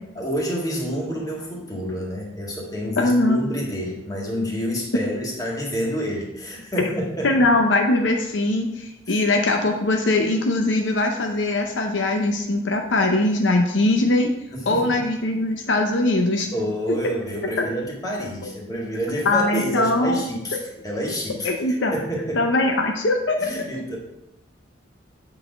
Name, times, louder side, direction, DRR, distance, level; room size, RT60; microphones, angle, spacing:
voice 1, 0.2-7.5 9.1-9.2 14.5-15.0 16.4-22.4 23.4-24.0, equal, 20° left, -3 dB, 1.7 m, -28 dB
voice 2, 3.0-3.4 7.2-14.3 14.7-16.5 19.2-20.2 21.4-21.9 22.4-23.5, left 2 dB, 70° left, 3 dB, 0.7 m, -21 dB
8.1 x 4.1 x 5.2 m, 0.91 s
head